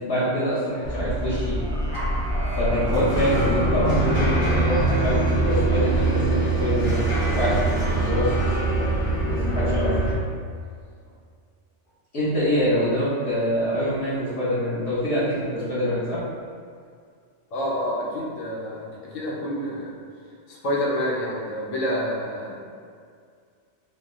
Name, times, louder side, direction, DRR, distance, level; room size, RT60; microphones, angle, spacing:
voice 1, 0.0-1.6 2.5-7.0 7.3-7.6 7.9-8.3 9.4-9.9 12.1-16.2, equal, 60° left, -11 dB, 1.3 m, -25 dB
sound 1, 0.8-10.1, right 2 dB, 40° left, 1.6 m, -23 dB
voice 2, 17.5-19.9 20.5-22.7, equal, 90° left, -4 dB, 1.2 m, -28 dB
4.0 x 2.1 x 3.7 m, 2.2 s
omnidirectional pair, 1.3 m